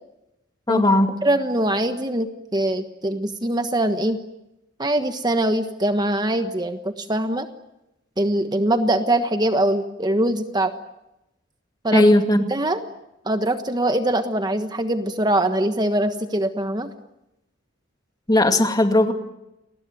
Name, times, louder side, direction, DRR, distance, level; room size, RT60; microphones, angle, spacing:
voice 1, 0.7-1.2 11.9-12.5 18.3-19.1, left 1 dB, 20° left, 6 dB, 2.3 m, -17 dB
voice 2, 1.2-4.2 4.8-7.5 8.2-10.7 11.8-12.1 12.5-12.8 13.2-16.9, right 1 dB, 20° right, 8 dB, 1.3 m, -22 dB
30.0 x 20.5 x 9.2 m, 0.91 s
head